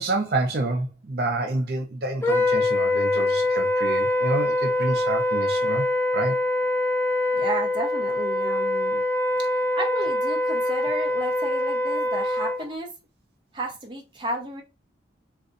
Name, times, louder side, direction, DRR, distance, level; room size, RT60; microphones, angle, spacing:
voice 1, 0.0-5.9 6.1-6.4, right 2 dB, 60° right, 0.5 m, -28 dB
Wind instrument woodwind instrument, 2.2-12.6, left 1 dB, 15° left, 0.3 m, -24 dB
voice 2, 7.3-9.0 9.4-12.9 13.5-14.6, right 1 dB, 25° right, 0.8 m, -33 dB
2.6 x 2.2 x 3.7 m
head